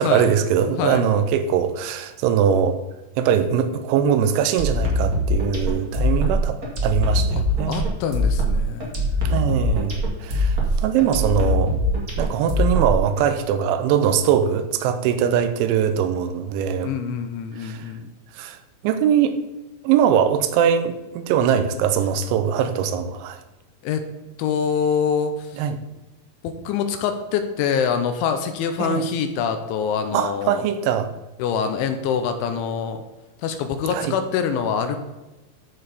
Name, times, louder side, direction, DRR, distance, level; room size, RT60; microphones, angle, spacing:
voice 1, 0.0-2.8 3.2-7.9 9.3-10.6 10.8-11.7 12.2-16.9 17.6-17.8 18.4-18.6 18.8-19.3 19.8-23.4 25.6-25.8 28.8-29.0 30.1-31.1 33.9-34.1, right 8 dB, 80° right, 9 dB, 3.1 m, -21 dB
sound 1, 4.6-13.2, left 1 dB, 45° right, 1.2 m, -22 dB
voice 2, 7.7-9.2 16.8-18.1 23.8-24.0 24.4-25.6 26.4-30.6 31.4-33.0 33.4-35.0, left 7 dB, 85° left, 7 dB, 3.1 m, -25 dB
14.0 x 4.7 x 5.0 m, 1.1 s
omnidirectional pair, 5.6 m